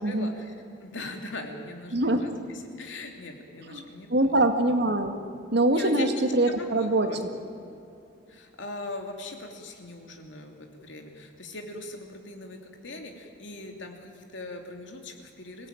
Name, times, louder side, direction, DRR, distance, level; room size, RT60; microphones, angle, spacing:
voice 1, 0.0-0.6 0.8-4.4 5.7-6.1 6.4-7.2 8.3-15.7, left 2 dB, 65° left, 3 dB, 3.0 m, -40 dB
voice 2, 1.9-2.2 3.7-3.8 4.1-5.1 5.5-7.1, right 2 dB, 60° right, 6 dB, 2.0 m, -23 dB
25.0 x 17.0 x 9.1 m, 2.6 s
head